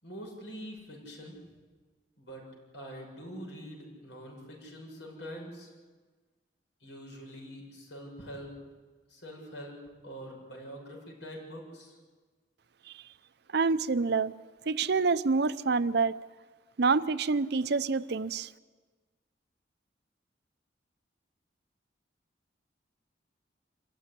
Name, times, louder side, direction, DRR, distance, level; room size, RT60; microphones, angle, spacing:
voice 1, 0.0-1.4 2.2-2.5 2.7-5.7 6.8-8.5 9.1-11.9, equal, 90° left, 0 dB, 6.8 m, -44 dB
voice 2, 13.5-14.3 14.7-16.2 16.8-18.5, right 4 dB, 65° right, 15 dB, 0.6 m, -27 dB
26.5 x 15.0 x 10.0 m, 1.4 s
head